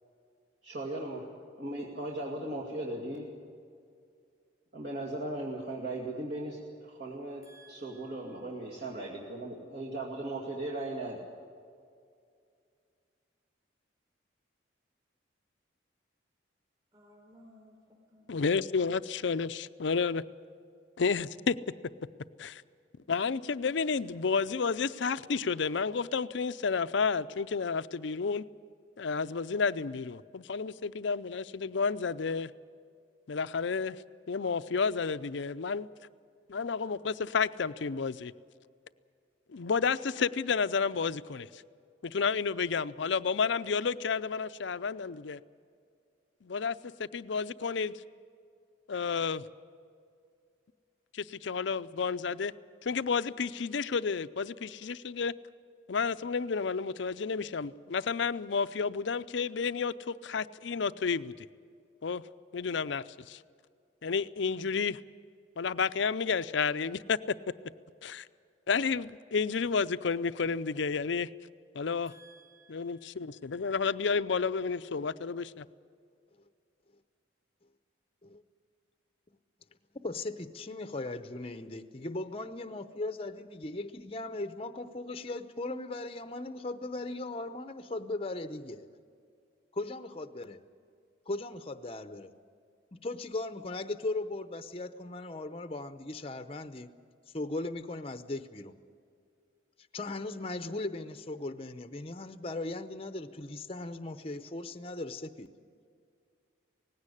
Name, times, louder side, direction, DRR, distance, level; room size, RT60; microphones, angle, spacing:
voice 1, 0.6-1.3 1.6-3.3 4.7-11.2, right 1 dB, 55° right, -3 dB, 2.3 m, -37 dB
voice 2, 7.4-8.4 16.9-17.8 18.1-18.3 72.1-73.5, right 2 dB, 20° right, 0 dB, 4.3 m, -59 dB
voice 3, 18.3-20.2 21.0-21.6 22.4-22.6 23.1-28.5 29.0-32.5 33.3-34.0 34.3-35.9 36.5-38.3 39.5-41.6 42.0-45.4 46.4-48.0 48.9-49.4 51.1-52.5 52.8-55.3 55.9-61.3 62.0-62.2 62.5-63.4 64.0-65.0 65.6-67.2 68.0-68.3 68.7-71.3 71.7-72.1 72.7-75.6, left 5 dB, 70° left, 14 dB, 0.5 m, -31 dB
voice 4, 80.0-88.9 89.7-90.6 91.3-92.3 93.0-96.9 97.3-98.7 99.9-105.5, left 2 dB, 30° left, 10 dB, 0.7 m, -38 dB
19.0 x 16.5 x 9.9 m, 2.3 s
head